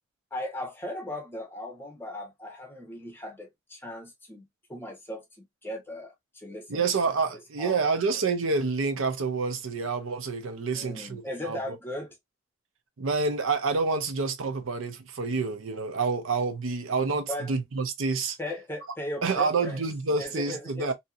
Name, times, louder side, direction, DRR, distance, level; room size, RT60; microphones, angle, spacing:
voice 1, 0.3-5.2 5.6-6.8 7.6-7.9 10.7-12.2 17.3-17.5 18.4-19.9 20.2-20.9, left 1 dB, 10° left, 0.8 m, -37 dB
voice 2, 6.7-11.8 13.0-18.4 19.2-20.9, right 4 dB, 80° right, 0.6 m, -28 dB
2.8 x 2.7 x 2.3 m
head